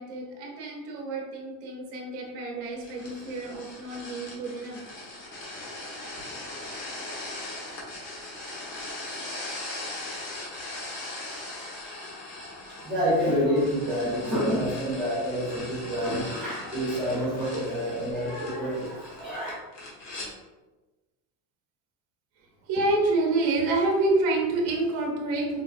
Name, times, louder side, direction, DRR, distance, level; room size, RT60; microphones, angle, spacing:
voice 1, 0.0-4.8 22.7-25.6, right 2 dB, 40° right, -1 dB, 0.5 m, -28 dB
sound 1, 2.8-20.3, left 2 dB, 90° left, 1.3 m, -39 dB
voice 2, 12.8-19.5, equal, ahead, -12 dB, 0.9 m, -28 dB
4.0 x 2.1 x 2.4 m, 1.2 s
cardioid pair, 180°, 40 cm